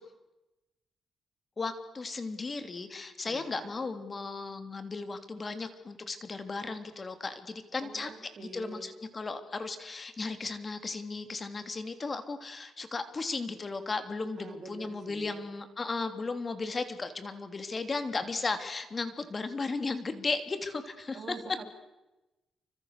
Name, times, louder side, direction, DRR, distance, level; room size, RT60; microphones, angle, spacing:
voice 1, 1.6-8.1 8.4-21.3, left 3 dB, 30° left, 9 dB, 3.2 m, -35 dB
voice 2, 3.2-3.7 7.8-8.9 14.4-15.4 21.1-21.6, right 4 dB, 50° right, 6 dB, 4.1 m, -46 dB
29.0 x 26.0 x 6.7 m, 1.0 s
cardioid pair, 100°, 0 cm